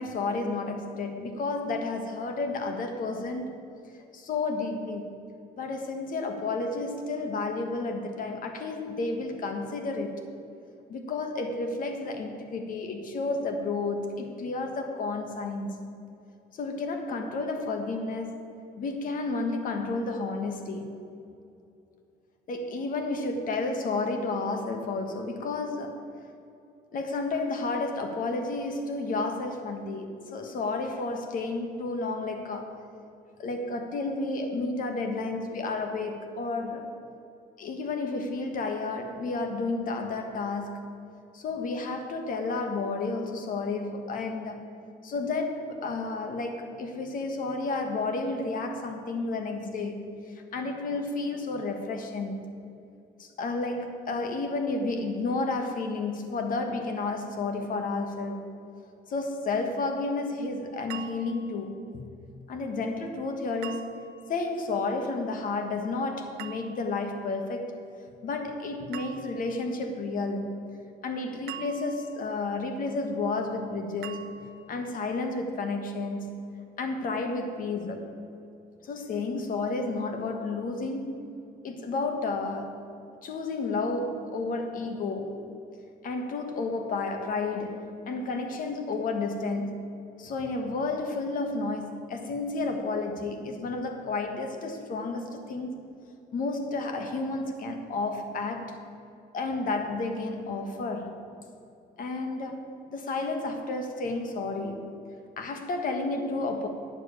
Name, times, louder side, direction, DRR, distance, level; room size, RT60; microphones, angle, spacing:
voice 1, 0.0-3.7 4.1-5.1 5.5-10.2 10.9-15.8 16.5-18.5 18.8-21.0 22.5-26.1 26.9-32.8 33.4-36.9 37.6-40.9 41.3-44.7 45.0-50.1 50.5-52.5 53.2-58.5 59.1-62.0 62.5-67.7 68.2-70.6 71.0-76.3 76.8-78.1 78.8-81.3 81.6-82.8 83.2-85.5 86.0-89.9 90.2-95.8 96.3-98.8 99.3-101.2 102.0-104.9 105.4-106.7, left 3 dB, 55° left, 1.5 m, -31 dB
sound 1, 60.9-61.6 63.6-64.3 66.4-67.1 68.9-69.6 71.5-72.4 74.0-74.8, right 9 dB, 75° right, 0.6 m, -43 dB
9.5 x 7.1 x 8.5 m
cardioid pair, 110°, 17 cm